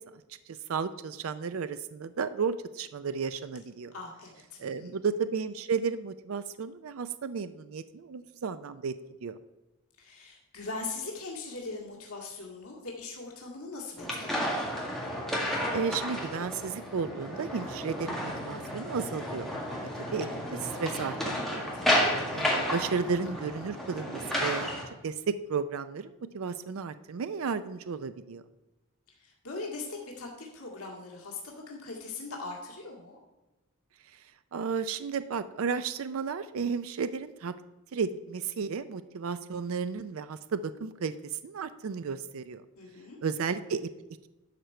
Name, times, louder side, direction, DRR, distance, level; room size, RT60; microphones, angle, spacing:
voice 1, 0.5-3.9 4.6-8.9 9.2-9.4 15.4-19.5 19.8-21.7 22.3-24.7 25.0-28.4 34.0-37.5 37.9-42.6 43.2-43.9, right 5 dB, 65° right, 12 dB, 0.4 m, -33 dB
voice 2, 3.9-4.9 10.0-14.7 21.7-22.1 29.2-33.2 42.8-43.2, left 3 dB, 80° left, -1 dB, 1.9 m, -41 dB
sound 1, 14.0-24.8, equal, ahead, 1.8 m, -32 dB
11.5 x 4.5 x 6.5 m, 1.0 s
head